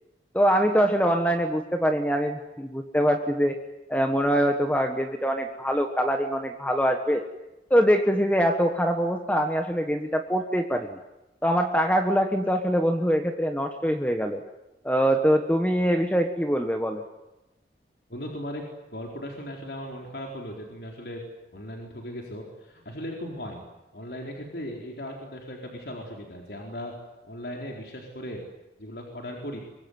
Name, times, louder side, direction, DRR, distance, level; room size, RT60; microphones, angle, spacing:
voice 1, 0.3-3.6 3.9-7.2 7.7-11.0 11.4-14.4 14.8-17.0, equal, 10° left, 5 dB, 1.5 m, -23 dB
voice 2, 18.1-21.2 21.5-23.6 23.9-26.9 27.2-28.4 28.8-29.6, equal, 70° left, 0 dB, 4.4 m, -37 dB
24.5 x 24.0 x 9.6 m, 0.99 s
head